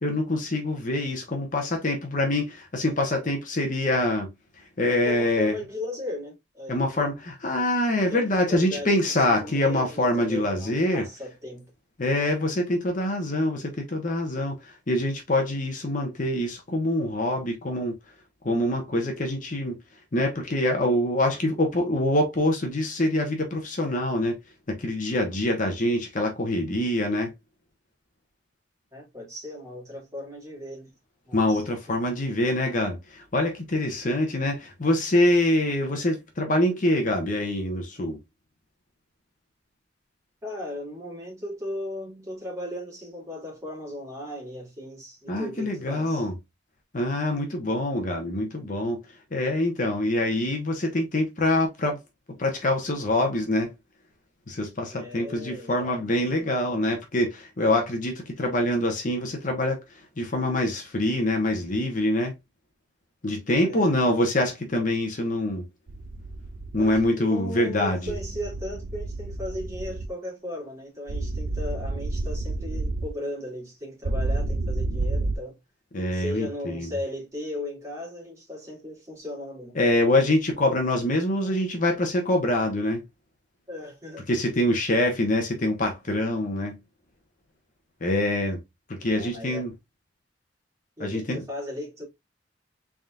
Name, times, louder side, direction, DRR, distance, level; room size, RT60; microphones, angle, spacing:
voice 1, 0.0-5.6 6.7-11.0 12.0-17.9 18.4-19.8 20.1-24.4 24.7-27.3 31.3-38.2 45.3-46.3 46.9-52.0 52.3-53.7 54.5-62.4 63.2-65.6 66.7-68.1 75.9-76.9 79.7-83.0 84.3-86.8 88.0-88.6 88.9-89.7 91.0-91.4, left 1 dB, 45° left, 1.0 m, -25 dB
voice 2, 5.0-7.0 8.1-11.7 28.9-30.9 31.3-32.0 40.4-46.3 54.9-56.3 63.7-63.9 66.8-75.6 76.1-79.8 83.7-84.3 89.1-89.7 91.0-92.0, left 1 dB, 15° right, 2.3 m, -37 dB
sound 1, 65.9-67.0 68.1-70.1 71.1-73.1 74.0-75.4, right 2 dB, 55° right, 0.5 m, -30 dB
4.0 x 3.6 x 2.4 m
head